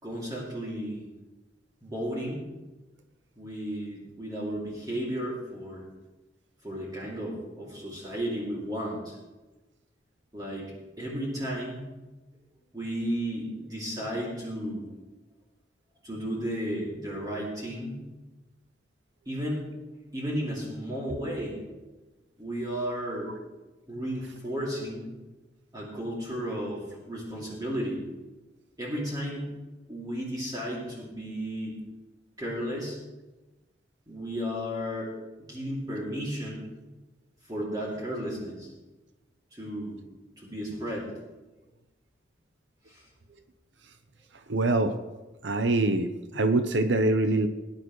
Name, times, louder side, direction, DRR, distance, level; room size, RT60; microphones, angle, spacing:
voice 1, 0.0-1.0 1.8-2.4 3.4-5.8 6.6-9.2 10.3-10.7 11.0-11.8 12.7-14.9 16.0-18.0 19.3-21.8 22.4-23.3 23.9-25.1 25.7-28.0 28.8-29.5 29.9-31.8 32.4-33.0 34.1-35.1 35.5-36.7 37.4-38.7 39.5-40.0 40.4-41.1 42.9-43.1, equal, 20° right, -5 dB, 2.6 m, -34 dB
voice 2, 44.5-44.9 45.4-47.5, right 2 dB, 80° right, 8 dB, 0.8 m, -24 dB
20.0 x 10.5 x 3.2 m, 1.1 s
head